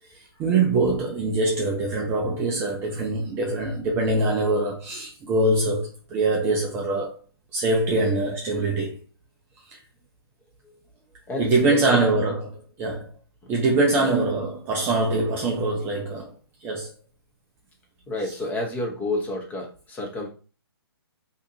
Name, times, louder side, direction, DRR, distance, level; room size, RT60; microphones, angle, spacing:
voice 1, 0.1-7.2 7.5-9.0 9.7-9.8 11.4-12.5 12.8-13.1 13.5-16.3 16.6-16.9, right 2 dB, 15° right, 0.4 m, -23 dB
voice 2, 11.3-12.1 13.4-13.5 14.0-14.1 18.1-20.3, left 1 dB, 10° left, 0.8 m, -30 dB
2.7 x 2.4 x 4.0 m
hypercardioid pair, 145°, 13 cm